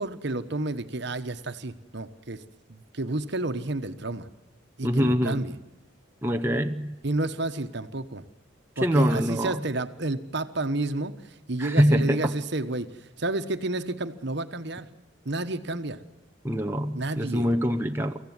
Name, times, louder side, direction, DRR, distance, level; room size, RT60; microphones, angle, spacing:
voice 1, 0.0-2.4 2.7-4.3 4.8-5.6 7.0-8.2 8.8-11.1 11.5-12.9 13.2-14.9 15.2-16.0 16.9-17.5, right 2 dB, 55° right, 9 dB, 1.3 m, -30 dB
voice 2, 4.8-5.4 6.2-6.9 8.8-9.6 11.6-12.3 16.4-18.2, equal, 10° right, 5 dB, 0.8 m, -24 dB
25.0 x 15.0 x 9.6 m, 1.0 s
head